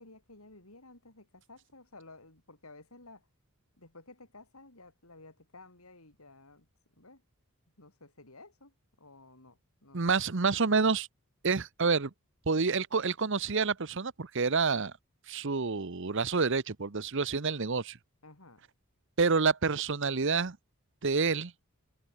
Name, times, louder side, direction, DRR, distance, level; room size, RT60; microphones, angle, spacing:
voice 1, 0.0-3.3 3.8-6.7 7.0-7.2 7.8-10.4 18.2-18.6, left 2 dB, 85° left, 6.0 m, -54 dB
voice 2, 9.9-11.1 11.4-12.1 12.5-14.9 15.3-18.0 19.2-20.6 21.0-21.5, right 4 dB, 60° right, 1.0 m, -28 dB
head